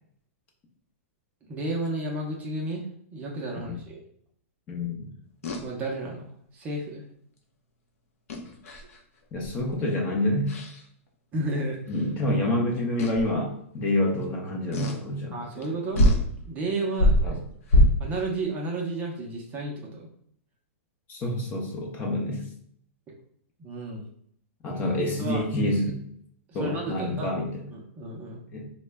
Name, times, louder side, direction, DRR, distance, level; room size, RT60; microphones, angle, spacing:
voice 1, 1.5-4.0 5.4-7.0 11.3-11.8 15.3-16.0 16.5-17.4 18.0-20.1 23.6-24.0 25.2-25.4 26.5-27.3 27.7-28.4, right 2 dB, 20° right, -1 dB, 0.5 m, -32 dB
voice 2, 4.7-5.1 9.3-10.5 11.9-15.6 17.2-17.4 21.1-22.5 24.6-26.0 26.5-27.6 28.5-28.7, left 1 dB, 20° left, 0 dB, 0.6 m, -27 dB
sound 1, 5.4-5.6 8.3-9.0 9.4-9.7 10.5-10.8 11.9-12.0 13.0-13.3 14.7-15.0 15.6-15.7 15.9-16.3 16.9-18.2, equal, 80° left, 0.7 m, -23 dB
3.7 x 2.1 x 3.3 m, 0.65 s
hypercardioid pair, 160°, 8 cm